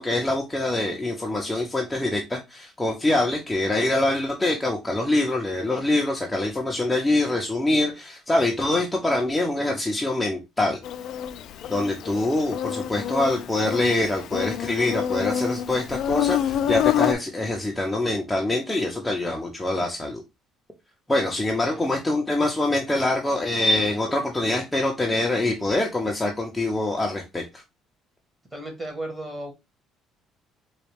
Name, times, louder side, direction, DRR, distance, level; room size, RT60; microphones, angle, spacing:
voice 1, 0.0-10.8 11.7-20.2 21.1-27.6, left 2 dB, 10° left, 0 dB, 0.6 m, -24 dB
Insect, 10.8-17.1, left 10 dB, 65° left, 0.4 m, -27 dB
voice 2, 28.5-29.5, right 1 dB, 15° right, 3 dB, 1.3 m, -34 dB
4.0 x 2.3 x 3.3 m, 0.24 s
cardioid pair, 115°, 0 cm